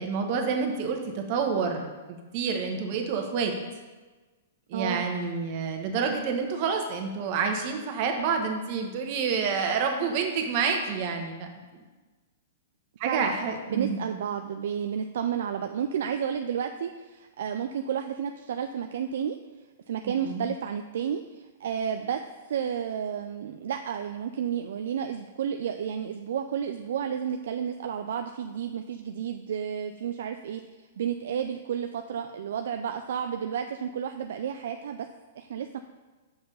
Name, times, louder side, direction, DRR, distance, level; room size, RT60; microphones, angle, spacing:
voice 1, 0.0-3.5 4.7-11.5 11.7-11.8 13.0-14.0 20.0-20.5, right 5 dB, 45° right, 4 dB, 1.2 m, -28 dB
voice 2, 4.7-5.1 13.0-13.3 13.7-19.4 19.9-22.2 22.5-30.6 31.0-35.1 35.4-35.8, right 8 dB, 70° right, 6 dB, 0.4 m, -31 dB
5.7 x 5.4 x 5.4 m, 1.3 s
hypercardioid pair, 125°, 0 cm